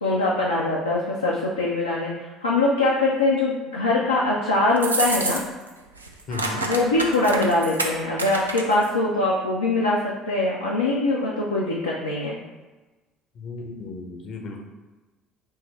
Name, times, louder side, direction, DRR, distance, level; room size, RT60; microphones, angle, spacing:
voice 1, 0.0-5.4 6.5-12.4, left 2 dB, 85° left, -5 dB, 0.5 m, -23 dB
sound 1, 4.8-5.7 6.0-8.9, right 2 dB, 85° right, 0.4 m, -28 dB
voice 2, 6.3-6.6 13.3-14.6, left 3 dB, 50° left, 2 dB, 0.7 m, -34 dB
5.4 x 2.7 x 3.2 m, 1.2 s
figure-of-eight pair, 55°, 0 cm